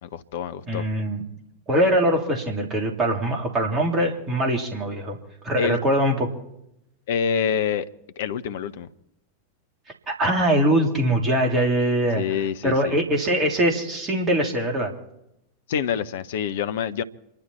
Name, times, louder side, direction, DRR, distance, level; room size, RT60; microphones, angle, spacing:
voice 1, 0.0-0.9 5.6-5.8 7.1-7.9 8.2-8.9 12.1-13.0 15.7-17.0, left 7 dB, 55° left, 0.8 m, -26 dB
voice 2, 0.7-1.2 1.7-5.2 5.4-6.3 10.1-12.2 12.6-14.9, right 1 dB, 25° right, 3.2 m, -22 dB
27.5 x 12.0 x 4.4 m
figure-of-eight pair, 90°, 0 cm